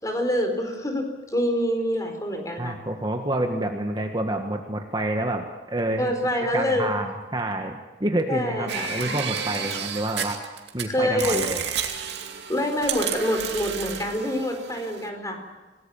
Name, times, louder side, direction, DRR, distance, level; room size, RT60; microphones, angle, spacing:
voice 1, 0.0-2.8 6.0-6.9 8.3-8.9 10.9-11.4 12.5-15.4, equal, 20° left, 4 dB, 4.4 m, -26 dB
voice 2, 2.6-6.1 6.5-10.4 10.7-11.6, right 1 dB, 25° right, 3 dB, 1.6 m, -28 dB
sound 1, 8.7-10.8 11.2-15.1, right 7 dB, 65° right, 2.6 m, -31 dB
27.0 x 19.0 x 7.2 m, 1.2 s
head